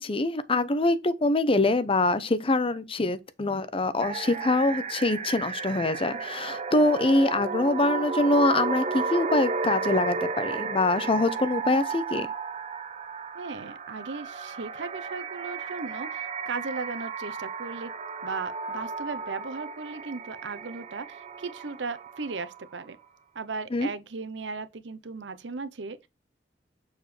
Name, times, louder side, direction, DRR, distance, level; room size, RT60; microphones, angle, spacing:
voice 1, 0.0-12.3 23.7-23.9, left 2 dB, 30° left, 0.7 m, -24 dB
sound 1, 4.0-22.8, right 4 dB, 40° right, 0.8 m, -33 dB
voice 2, 13.3-17.9 18.2-23.0 23.3-26.0, right 4 dB, 85° right, 0.8 m, -36 dB
6.6 x 5.0 x 3.2 m
head